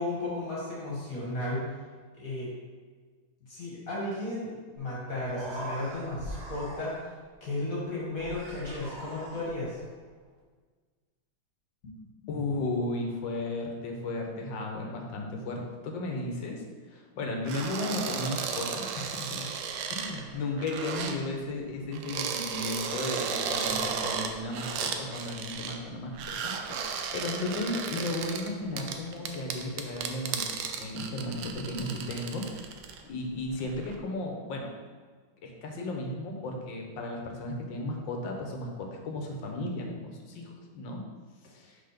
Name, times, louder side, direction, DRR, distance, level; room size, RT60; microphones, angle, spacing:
voice 1, 0.0-1.6 2.1-2.5 3.5-6.9 7.4-9.8 11.8-12.0, left 2 dB, 50° left, -7 dB, 2.3 m, -34 dB
Human voice, 4.8-4.9 5.1-7.2 8.1-9.8, right 1 dB, 40° right, 1.5 m, -41 dB
voice 2, 12.3-19.5 19.9-30.4 30.8-32.5 33.0-34.7 35.4-41.0 41.4-41.8, left 2 dB, 85° left, 1 dB, 1.7 m, -35 dB
sound 1, 17.4-21.2 21.9-25.8 26.1-33.0 33.4-33.9, right 6 dB, 80° right, 1.3 m, -34 dB
5.7 x 4.3 x 5.1 m, 1.5 s
omnidirectional pair, 2.0 m